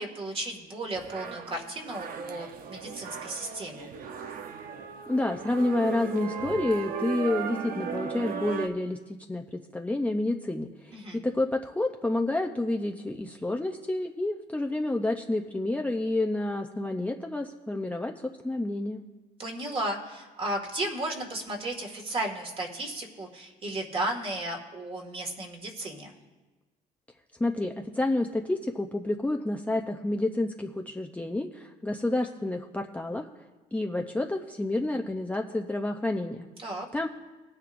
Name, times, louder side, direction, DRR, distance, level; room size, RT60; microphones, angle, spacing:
voice 1, 0.0-3.9 10.9-11.2 19.4-26.1 36.6-36.9, right 1 dB, 35° right, 2 dB, 2.0 m, -34 dB
sound 1, 1.0-8.7, right 6 dB, 60° right, 0.9 m, -36 dB
voice 2, 5.1-19.0 27.4-33.3 33.7-36.5 36.9-37.1, left 2 dB, 10° left, 2 dB, 0.6 m, -29 dB
19.5 x 9.8 x 2.6 m, 1.2 s
cardioid pair, 110°, 17 cm